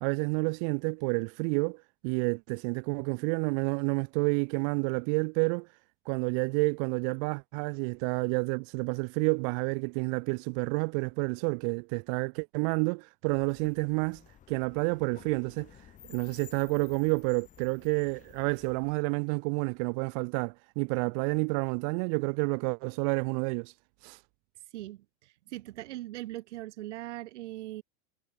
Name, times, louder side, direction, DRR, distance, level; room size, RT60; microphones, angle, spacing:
voice 1, 0.0-5.7 6.1-14.2 14.5-15.8 16.1-23.7 24.0-24.2, right 40 dB or more, 30° right, 0.6 m, -29 dB
sound 1, 13.3-18.9, left 10 dB, 20° left, 6.6 m, -54 dB
voice 2, 24.7-27.8, right 16 dB, 70° right, 1.5 m, -40 dB
supercardioid pair, 170°, 36 cm